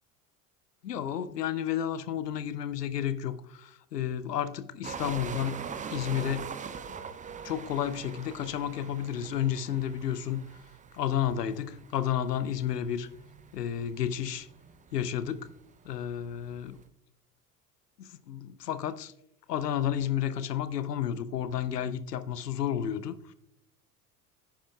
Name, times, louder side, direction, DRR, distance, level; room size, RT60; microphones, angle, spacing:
voice 1, 0.8-5.6 5.9-6.5 7.4-10.4 10.9-13.1 13.5-14.5 14.9-15.5 15.9-16.8 18.0-19.1 19.5-23.3, left 10 dB, 80° left, 14 dB, 0.7 m, -31 dB
sound 1, 4.8-16.8, right 6 dB, 15° right, 0.6 m, -43 dB
10.5 x 10.0 x 2.3 m, 0.77 s
figure-of-eight pair, 70°, 47 cm